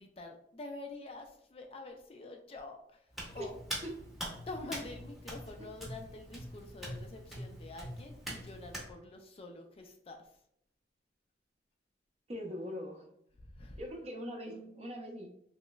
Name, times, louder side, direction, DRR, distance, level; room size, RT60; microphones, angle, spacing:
voice 1, 0.0-3.1 3.3-3.6 4.5-10.3 13.4-13.8, left 2 dB, 35° left, 4 dB, 0.3 m, -47 dB
Hands, 3.1-8.9, equal, ahead, 0.7 m, -43 dB
voice 2, 12.3-13.1 13.8-15.3, equal, 35° right, 2 dB, 0.6 m, -41 dB
3.1 x 2.9 x 2.3 m, 0.72 s
head